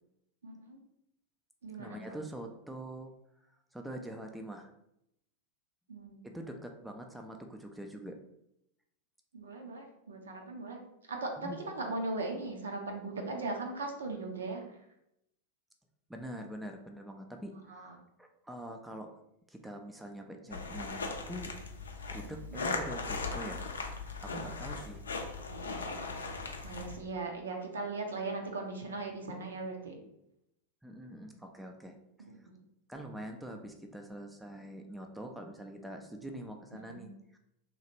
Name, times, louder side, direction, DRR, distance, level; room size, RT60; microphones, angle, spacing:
voice 1, 0.4-0.8 1.6-2.0 5.9-6.3 9.3-10.8 11.1-14.6 17.7-17.9 22.5-22.6 25.5-26.1 26.6-29.9 32.2-32.3 36.9-37.1, right 3 dB, 70° right, 2 dB, 0.6 m, -39 dB
voice 2, 1.8-3.1 3.7-4.7 6.2-8.2 11.4-11.6 16.1-19.1 19.5-21.5 22.1-23.7 24.2-25.0 30.8-32.0 32.4-32.5 32.9-37.4, right 1 dB, 5° right, 3 dB, 0.3 m, -44 dB
sound 1, 20.5-27.0, left 3 dB, 70° left, 0.4 m, -38 dB
3.0 x 2.4 x 2.8 m, 0.80 s
figure-of-eight pair, 90°, 0 cm